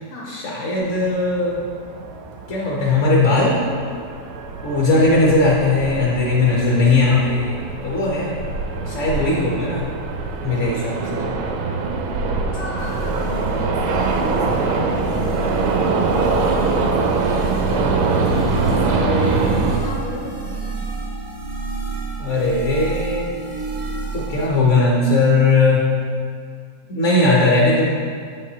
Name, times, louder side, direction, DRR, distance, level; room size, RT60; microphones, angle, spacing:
voice 1, 0.3-1.6 2.5-3.6 4.6-8.3 8.9-9.9 10.4-11.0 11.2-11.3 18.8-19.6 22.2-23.3 24.1-25.9 26.9-27.9, left 3 dB, 60° left, -4 dB, 0.8 m, -18 dB
sound 1, 0.8-19.8, right 4 dB, 85° right, 1.4 m, -24 dB
voice 2, 12.4-15.5 15.8-20.7, left 1 dB, 80° left, -5 dB, 2.2 m, -34 dB
sound 2, 12.8-24.5, right 2 dB, 60° right, 0.4 m, -30 dB
7.3 x 5.7 x 2.8 m, 2.1 s
omnidirectional pair, 2.2 m